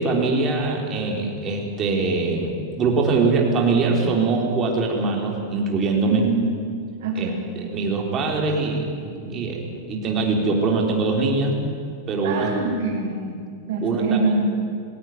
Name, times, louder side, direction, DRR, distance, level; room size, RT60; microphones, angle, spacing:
voice 1, 0.0-6.2 7.2-7.3 7.6-9.6 9.9-11.6 12.1-12.5 13.3-13.4 13.8-14.2, right 3 dB, 25° right, 0 dB, 3.8 m, -22 dB
voice 2, 6.0-6.5 7.0-7.5 12.2-13.2 13.7-14.5, right 3 dB, 60° right, -5 dB, 5.8 m, -24 dB
20.5 x 17.0 x 9.5 m, 2.2 s
supercardioid pair, 160°, 0 cm